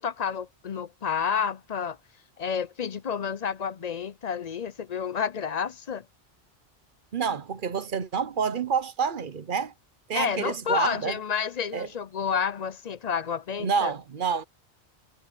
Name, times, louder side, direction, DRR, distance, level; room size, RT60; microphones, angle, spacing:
voice 1, 0.0-2.0 2.4-6.1 10.1-13.9, left 7 dB, 45° left, 0.7 m, -30 dB
voice 2, 7.1-9.7 10.1-11.2 11.7-11.9 13.6-14.4, right 6 dB, 55° right, 0.9 m, -28 dB
omnidirectional pair, 1.1 m